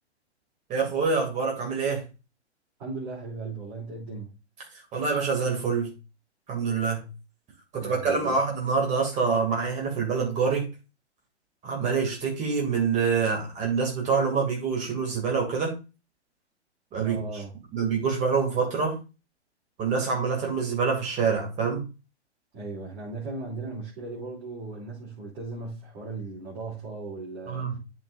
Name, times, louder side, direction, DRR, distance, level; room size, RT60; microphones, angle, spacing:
voice 1, 0.7-2.0 4.9-5.9 6.5-7.1 7.7-10.7 11.6-15.7 16.9-17.2 17.7-19.0 19.8-21.8 27.5-27.7, right 5 dB, 20° right, 2.6 m, -26 dB
voice 2, 2.8-4.3 7.7-8.4 17.0-17.6 22.5-27.8, right 3 dB, 35° right, 3.3 m, -37 dB
12.5 x 4.7 x 2.6 m
figure-of-eight pair, 115°, 34 cm